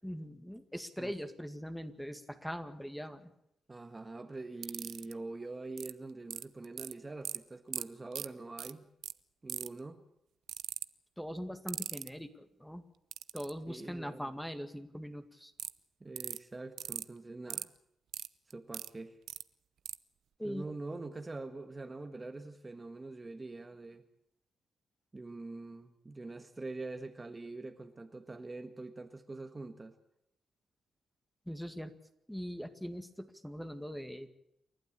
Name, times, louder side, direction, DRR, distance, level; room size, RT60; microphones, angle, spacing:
voice 1, 0.0-3.3 11.2-12.8 13.3-15.5 20.4-20.7 31.5-31.9 32.3-34.3, equal, 5° left, 8 dB, 2.0 m, -41 dB
voice 2, 3.7-8.9 9.4-10.0 13.7-14.4 16.0-17.7 18.5-19.2 20.4-24.0 25.1-29.9, right 3 dB, 25° right, 7 dB, 1.5 m, -44 dB
sound 1, 4.6-5.1 5.8-5.9 6.3-6.9 7.3-7.4 7.7-7.8 8.1-8.3 8.6-8.7 9.0-9.1 9.5-9.8 10.5-10.9 11.7-12.1 13.1-13.5 15.6-15.7 16.2-16.4 16.8-17.0 17.5-17.6 18.1-18.9 19.3-19.4 19.9-20.0, right 10 dB, 80° right, 0.7 m, -38 dB
29.0 x 12.0 x 8.7 m, 0.80 s
cardioid pair, 90°, 0 cm